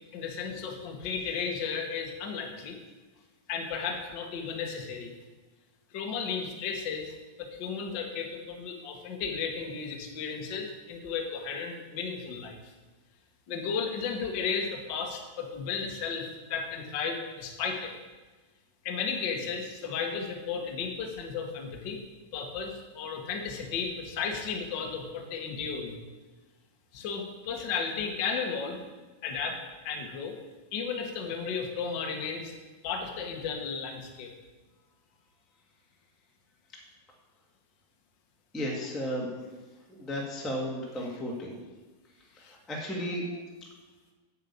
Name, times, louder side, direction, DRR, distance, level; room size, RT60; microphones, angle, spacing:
voice 1, 0.1-2.8 3.5-5.1 5.9-12.6 13.5-17.9 18.8-22.0 22.3-26.0 26.9-28.8 29.2-30.4 30.7-32.5 32.8-34.3 42.4-42.5, left 5 dB, 70° left, 2 dB, 1.0 m, -34 dB
voice 2, 38.5-39.3 39.9-41.6 42.5-43.3, equal, ahead, -2 dB, 0.8 m, -34 dB
9.1 x 6.5 x 8.4 m, 1.2 s
omnidirectional pair, 4.1 m